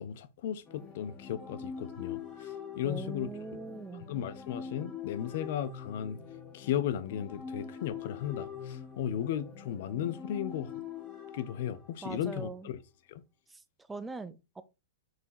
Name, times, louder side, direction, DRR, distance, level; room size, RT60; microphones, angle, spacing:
voice 1, 0.0-3.3 4.1-6.2 6.5-10.8 11.3-12.8 13.1-13.2, left 10 dB, 60° left, 1.0 m, -35 dB
sound 1, 0.7-12.4, left 7 dB, 30° left, 2.5 m, -44 dB
voice 2, 2.8-4.1 12.0-12.7 13.9-14.6, right 3 dB, 10° right, 0.8 m, -41 dB
6.3 x 4.7 x 4.8 m
hypercardioid pair, 110°, 0 cm